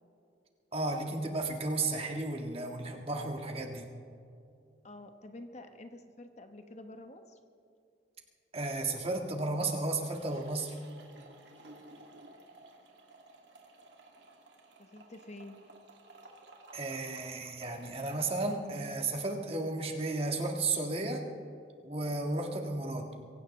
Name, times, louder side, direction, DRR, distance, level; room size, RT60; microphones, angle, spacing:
voice 1, 0.7-3.9 8.5-10.7 16.7-21.2 21.8-23.2, right 2 dB, 35° right, 2 dB, 1.6 m, -33 dB
voice 2, 4.8-7.4 14.8-15.6, left 1 dB, 40° left, 6 dB, 1.0 m, -48 dB
sound 1, 10.1-18.6, right 2 dB, 85° right, 2.3 m, -55 dB
24.0 x 16.5 x 3.2 m, 2.6 s
head